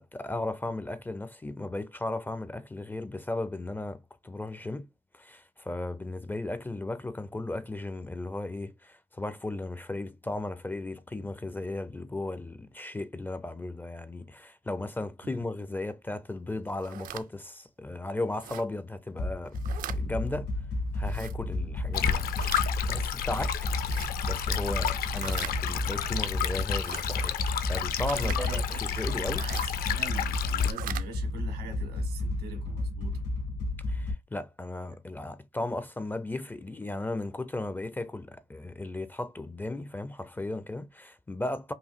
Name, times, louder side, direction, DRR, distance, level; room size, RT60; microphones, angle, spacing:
voice 1, 0.0-4.9 5.1-19.6 19.9-20.5 20.9-22.2 22.9-23.6 23.8-27.4 27.7-29.4 33.9-41.7, left 2 dB, 10° left, 0.4 m, -36 dB
sound 1, 16.7-17.2 18.4-18.6 19.5-20.0 21.0-21.3 22.2-22.7 23.8-24.1 25.1-25.6 26.7-27.0 28.1-28.4 29.4-29.7 30.6-31.1, right 11 dB, 55° right, 0.4 m, -40 dB
sound 2, 19.2-34.1, left 2 dB, 90° left, 2.2 m, -32 dB
Stream, 21.9-30.7, left 9 dB, 60° left, 0.6 m, -31 dB
voice 2, 22.0-22.7 28.1-33.2, right 6 dB, 90° right, 2.1 m, -43 dB
5.0 x 2.6 x 2.5 m
cardioid pair, 110°, 17 cm